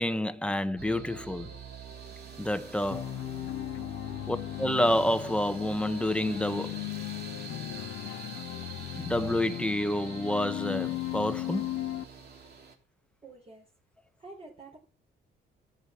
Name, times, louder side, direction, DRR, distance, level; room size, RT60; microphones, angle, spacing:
voice 1, 0.0-1.5 2.4-3.1 4.3-6.8 8.9-11.7, left 1 dB, 5° left, 1.2 m, -29 dB
sound 1, 0.8-12.7, right 4 dB, 55° right, 3.4 m, -45 dB
sound 2, 2.9-12.0, left 16 dB, 90° left, 0.7 m, -37 dB
voice 2, 13.2-13.7 14.2-14.8, right 3 dB, 30° right, 3.8 m, -48 dB
13.5 x 8.5 x 7.2 m
cardioid pair, 90°, 20 cm